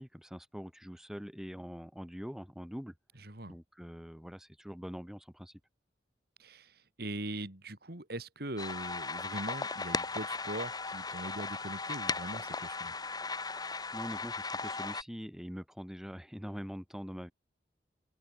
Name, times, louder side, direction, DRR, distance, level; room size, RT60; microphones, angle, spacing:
voice 1, 0.0-2.9 3.5-5.6 13.9-17.3, equal, 5° right, 5.1 m, -43 dB
voice 2, 6.4-6.7 7.0-13.0, right 1 dB, 60° right, 3.1 m, -41 dB
sound 1, 8.6-15.0, left 4 dB, 20° left, 2.8 m, -37 dB
head